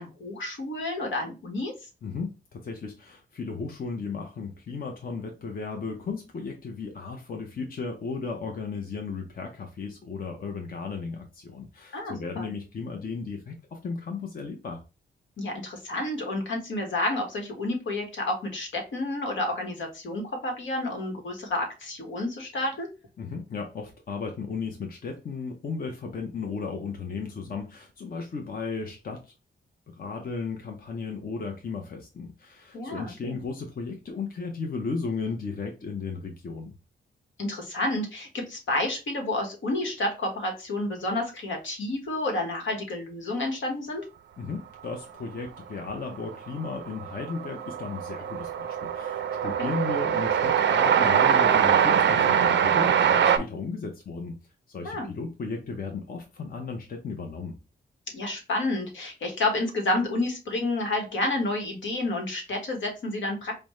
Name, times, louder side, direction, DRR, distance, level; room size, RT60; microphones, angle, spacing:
voice 1, 0.0-1.7 11.9-12.5 15.4-22.9 32.7-33.4 37.4-44.0 49.4-49.7 54.8-55.1 58.1-63.6, left 2 dB, 80° left, 1.2 m, -30 dB
voice 2, 2.0-14.8 23.2-29.3 29.9-36.8 44.4-54.4 54.7-57.6, left 4 dB, 50° left, 0.7 m, -35 dB
Train, 46.0-46.1 46.2-53.4, right 8 dB, 70° right, 0.5 m, -23 dB
5.1 x 2.1 x 3.0 m
cardioid pair, 100°, 19 cm